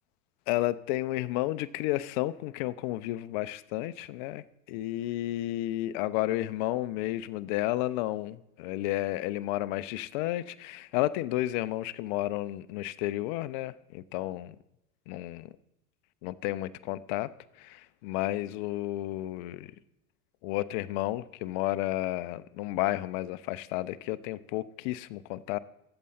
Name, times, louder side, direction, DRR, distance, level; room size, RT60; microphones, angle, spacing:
voice 1, 0.5-14.6 15.1-15.5 16.2-17.3 17.6-19.7 20.4-25.6, left 16 dB, 35° left, 0.4 m, -32 dB
13.5 x 7.8 x 4.1 m
figure-of-eight pair, 80°, 43 cm